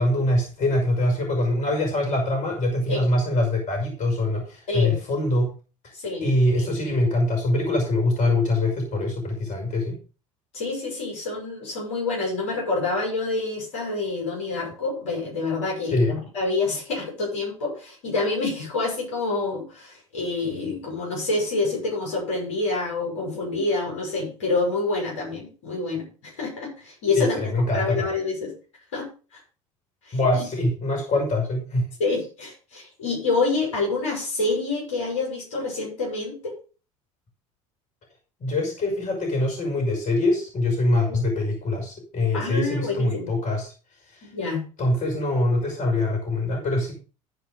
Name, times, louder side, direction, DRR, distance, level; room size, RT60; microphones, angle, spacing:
voice 1, 0.0-5.5 6.2-10.0 15.9-16.1 27.2-28.1 30.1-31.9 38.4-43.7 44.1-44.2 44.8-46.9, left 1 dB, 50° left, 3 dB, 5.6 m, -23 dB
voice 2, 5.9-6.2 6.5-6.7 10.5-27.4 27.7-28.5 28.9-29.4 30.0-30.2 32.0-36.5 42.3-43.3 44.2-44.6, left 3 dB, 75° left, -3 dB, 6.2 m, -27 dB
14.5 x 5.1 x 5.0 m, 0.35 s
hypercardioid pair, 70°, 17 cm